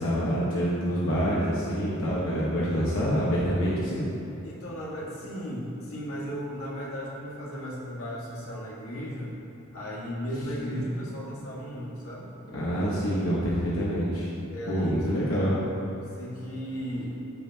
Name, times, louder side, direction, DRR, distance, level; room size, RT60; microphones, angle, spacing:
voice 1, 0.0-4.0 12.5-14.3 14.7-15.6, equal, 70° left, -7 dB, 1.3 m, -26 dB
voice 2, 4.4-9.3 9.7-12.3 12.9-13.3 14.5-15.0 16.2-17.2, equal, 85° left, -5 dB, 1.9 m, -35 dB
14.5 x 5.6 x 2.9 m, 2.9 s
head